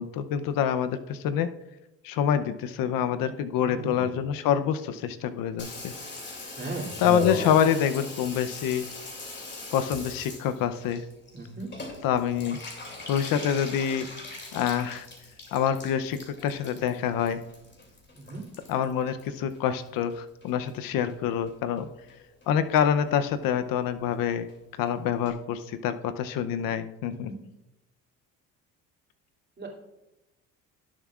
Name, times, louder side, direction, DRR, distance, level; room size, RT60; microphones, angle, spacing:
voice 1, 0.0-1.5 2.0-5.9 7.0-8.9 9.7-11.0 12.0-12.6 13.1-14.1 14.5-15.1 15.5-17.4 18.7-21.9 22.5-24.5 24.8-27.3, left 9 dB, 75° left, 11 dB, 0.7 m, -26 dB
voice 2, 3.6-4.1 6.6-6.9 11.3-11.7 18.1-18.4 27.1-27.4 29.6-29.7, right 2 dB, 30° right, -2 dB, 2.7 m, -37 dB
Water tap faucet / Bathtub (filling or washing), 5.6-20.1 20.4-21.1 21.5-21.6 21.8-21.9 22.1-22.5 22.7-22.8 23.1-23.2 23.4-23.5 23.8-23.9 24.1-24.2 24.5-24.6 24.9-25.0 25.3-25.4, left 2 dB, 30° left, 2.7 m, -39 dB
18.0 x 7.4 x 2.4 m, 0.97 s
cardioid pair, 110°, 35 cm